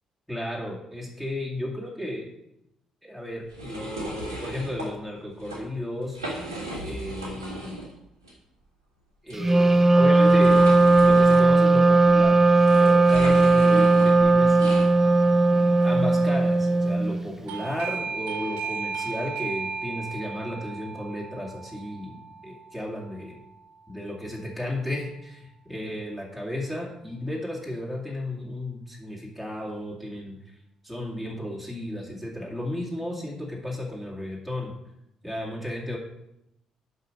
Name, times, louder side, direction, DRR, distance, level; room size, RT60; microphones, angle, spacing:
voice 1, 0.3-2.3 3.0-6.2 6.8-7.8 9.2-10.6 11.0-14.8 15.5-23.4 23.9-30.6 30.8-34.7 35.2-36.0, left 1 dB, 5° left, -5 dB, 2.3 m, -34 dB
sound 1, 3.5-4.9 5.3-5.6 6.0-7.9 8.2-8.3 9.3-14.9, right 1 dB, 85° right, 1.6 m, -36 dB
Wind instrument woodwind instrument, 9.4-17.2, right 3 dB, 15° right, 0.4 m, -18 dB
Doorbell, 17.5-24.0, right 5 dB, 60° right, 0.5 m, -35 dB
8.1 x 5.9 x 5.3 m, 0.84 s
figure-of-eight pair, 45°, 2 cm